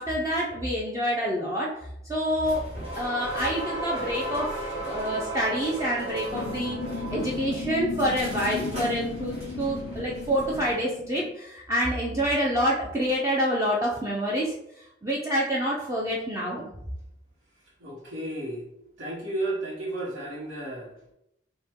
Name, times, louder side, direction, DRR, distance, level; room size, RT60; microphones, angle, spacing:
voice 1, 0.0-1.7 2.1-2.7 2.9-6.8 7.1-16.6, equal, 15° right, -4 dB, 0.5 m, -27 dB
sound 1, 2.4-10.7, right 1 dB, 30° right, 1.6 m, -35 dB
sound 2, 6.3-11.3, left 4 dB, 75° left, 0.4 m, -35 dB
voice 2, 17.8-18.7 19.0-21.1, right 1 dB, 70° right, -8 dB, 1.1 m, -33 dB
5.5 x 2.2 x 3.5 m, 0.81 s
head